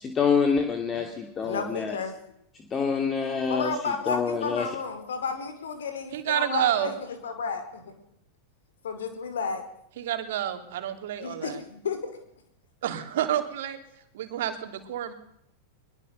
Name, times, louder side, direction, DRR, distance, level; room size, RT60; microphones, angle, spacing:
voice 1, 0.0-2.0 2.7-3.7 4.1-4.7, left 5 dB, 20° left, 5 dB, 2.7 m, -26 dB
voice 2, 1.4-2.1 3.5-7.9 8.8-9.6 11.2-12.1, left 5 dB, 65° left, 8 dB, 4.7 m, -32 dB
voice 3, 6.1-6.9 10.0-11.6 12.8-13.8 14.1-15.1, right 11 dB, 55° right, 7 dB, 3.1 m, -29 dB
22.5 x 22.0 x 6.7 m, 0.74 s
figure-of-eight pair, 90°, 0 cm